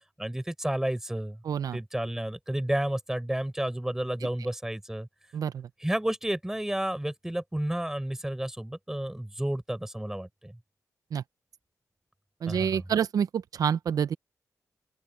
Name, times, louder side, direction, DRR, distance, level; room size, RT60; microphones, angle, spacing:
voice 1, 0.2-1.4 1.7-5.1 5.8-10.6 12.5-12.8, right 1 dB, 5° right, 4.2 m, -31 dB
voice 2, 1.4-1.8 5.3-5.7 11.1-11.2 12.4-14.1, right 8 dB, 70° right, 0.7 m, -28 dB
open air
wide cardioid pair, 110°, 7 cm